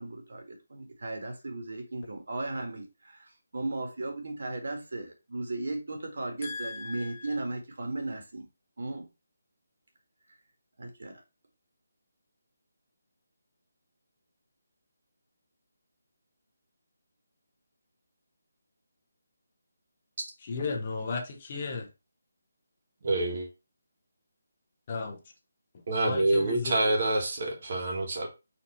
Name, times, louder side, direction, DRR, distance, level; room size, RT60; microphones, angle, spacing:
voice 1, 0.0-8.5 8.8-9.1 10.8-11.2, right 2 dB, 60° right, 1.4 m, -36 dB
voice 2, 6.4-7.2 20.4-21.9 24.9-25.2 26.0-26.8, left 4 dB, 25° left, 0.6 m, -35 dB
voice 3, 23.0-23.5 25.9-28.3, right 2 dB, 35° right, 1.2 m, -27 dB
4.3 x 2.8 x 4.2 m
hypercardioid pair, 175°, 0 cm